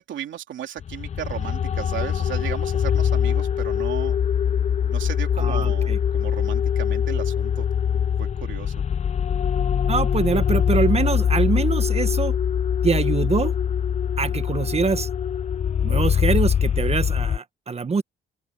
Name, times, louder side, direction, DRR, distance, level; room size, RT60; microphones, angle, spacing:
voice 1, 0.0-4.2 4.9-7.6 8.2-8.7, right 10 dB, 70° right, 3.0 m, -35 dB
sound 1, 0.8-17.4, left 8 dB, 35° left, 0.5 m, -23 dB
voice 2, 5.4-6.0 9.9-12.4 12.8-13.5 14.2-15.1 15.8-18.0, right 5 dB, 30° right, 1.3 m, -24 dB
open air
cardioid pair, 90°, 20 cm